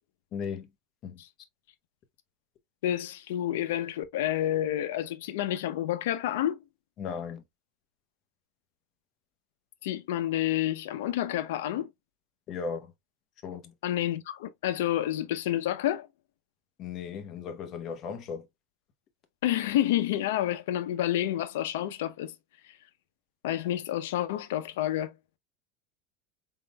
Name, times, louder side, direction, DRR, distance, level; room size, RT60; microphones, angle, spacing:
voice 1, 0.3-0.7 1.0-1.2 7.0-7.4 12.5-12.9 13.4-13.7 16.8-18.5, left 6 dB, 35° left, 0.9 m, -36 dB
voice 2, 2.8-6.6 9.8-11.9 13.8-16.1 19.4-22.3 23.4-25.1, left 12 dB, 85° left, 0.6 m, -29 dB
4.2 x 3.7 x 2.2 m
supercardioid pair, 150°, 0 cm